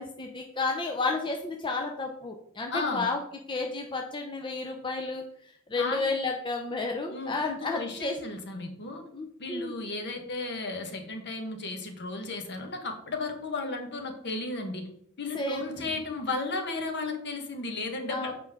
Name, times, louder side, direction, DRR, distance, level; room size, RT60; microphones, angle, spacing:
voice 1, 0.0-3.2 3.5-8.1 9.1-9.7 15.3-15.9 18.1-18.3, left 3 dB, 20° left, 2 dB, 0.6 m, -32 dB
voice 2, 2.7-3.1 5.8-6.0 7.1-9.0 9.4-14.9 15.2-18.3, left 3 dB, 50° left, 4 dB, 1.3 m, -34 dB
7.7 x 5.2 x 3.6 m, 0.69 s
head